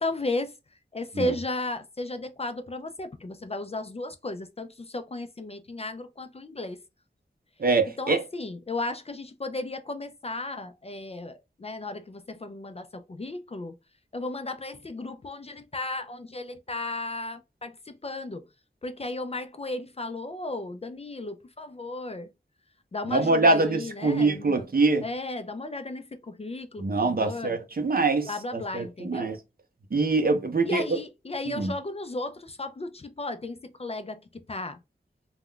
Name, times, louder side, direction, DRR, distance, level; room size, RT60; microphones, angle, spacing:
voice 1, 0.0-0.5 0.9-6.8 8.0-13.8 14.1-18.4 18.8-22.3 22.9-24.6 25.0-27.6 28.2-29.3 30.7-34.8, left 2 dB, 35° left, 0.3 m, -35 dB
voice 2, 7.6-8.2 23.1-25.0 26.8-29.4 29.9-31.0 31.6-31.7, right 3 dB, 50° right, 0.6 m, -24 dB
2.3 x 2.1 x 3.7 m
wide cardioid pair, 55°, 19 cm